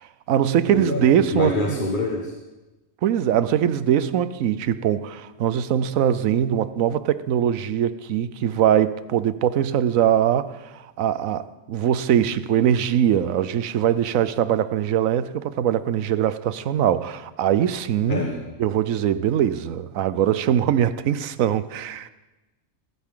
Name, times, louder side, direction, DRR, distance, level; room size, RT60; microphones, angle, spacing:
voice 1, 0.0-1.8 3.0-18.2 18.6-22.1, right 10 dB, 85° right, 1.1 m, -22 dB
voice 2, 0.7-2.3 18.1-18.4, left 1 dB, 40° left, 1.6 m, -25 dB
19.5 x 14.0 x 3.8 m
omnidirectional pair, 1.4 m